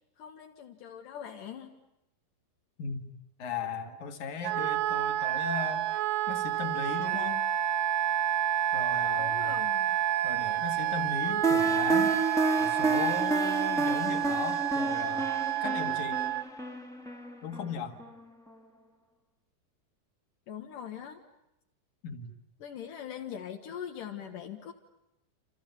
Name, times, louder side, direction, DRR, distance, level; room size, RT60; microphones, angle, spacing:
voice 1, 0.2-1.7 9.2-10.0 20.5-21.2 22.6-24.7, left 9 dB, 80° left, 2 dB, 3.2 m, -42 dB
voice 2, 2.8-3.1 3.4-5.9 6.3-7.4 8.7-9.6 10.2-12.2 12.6-15.3 15.6-16.2 17.4-18.0 22.0-22.3, left 6 dB, 65° left, 6 dB, 3.5 m, -37 dB
Wind instrument woodwind instrument, 4.4-16.5, right 11 dB, 65° right, 2.4 m, -29 dB
sound 1, 11.4-18.2, right 3 dB, ahead, 1.0 m, -30 dB
29.5 x 28.5 x 7.0 m, 0.84 s
omnidirectional pair, 3.8 m